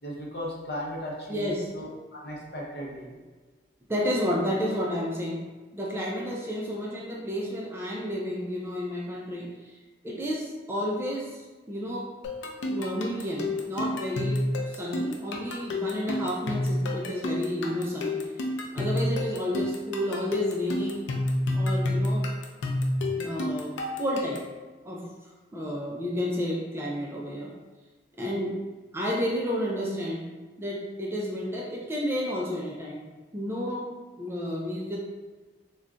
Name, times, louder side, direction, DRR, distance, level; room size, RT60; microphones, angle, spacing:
voice 1, 0.0-3.2, equal, 60° left, -3 dB, 0.7 m, -37 dB
voice 2, 1.3-1.7 3.9-5.4 5.7-9.8 10.0-12.1 12.7-18.2 18.7-21.1 21.5-22.3 23.1-24.4 24.8-25.0 25.5-27.5 28.2-28.5 28.9-30.3 30.6-33.1 33.3-33.9 34.2-35.0, equal, 15° right, -3 dB, 0.3 m, -31 dB
sound 1, 12.2-24.6, left 1 dB, 90° left, 0.4 m, -29 dB
2.3 x 2.2 x 3.8 m, 1.3 s
head